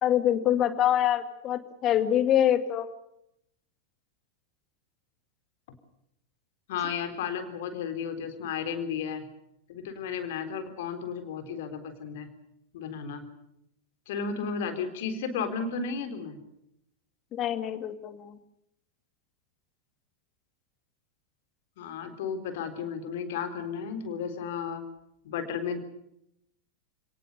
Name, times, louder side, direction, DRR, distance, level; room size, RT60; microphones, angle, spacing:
voice 1, 0.0-2.9 17.3-18.4, left 11 dB, 30° left, 11 dB, 2.3 m, -25 dB
voice 2, 6.7-9.3 9.7-12.3 12.7-13.2 14.1-16.4 21.8-24.8 25.2-25.8, left 6 dB, 55° left, 9 dB, 3.9 m, -33 dB
29.5 x 18.5 x 6.8 m, 0.78 s
figure-of-eight pair, 90°, 0 cm